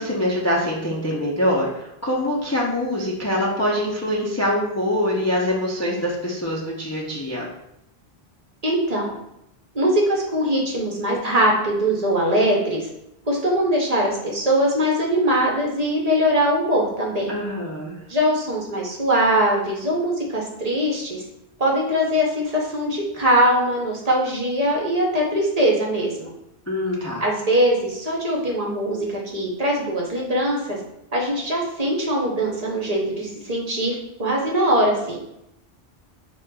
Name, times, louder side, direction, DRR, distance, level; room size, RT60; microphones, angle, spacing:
voice 1, 0.0-7.5 17.3-18.0 26.7-27.3, left 1 dB, 25° left, -4 dB, 0.4 m, -24 dB
voice 2, 8.6-9.2 9.7-12.9 13.3-17.3 18.1-21.2 21.6-26.3 27.2-30.8 31.1-33.9 34.2-35.2, equal, 45° right, -2 dB, 0.7 m, -21 dB
6.2 x 2.2 x 2.2 m, 0.84 s
omnidirectional pair, 1.1 m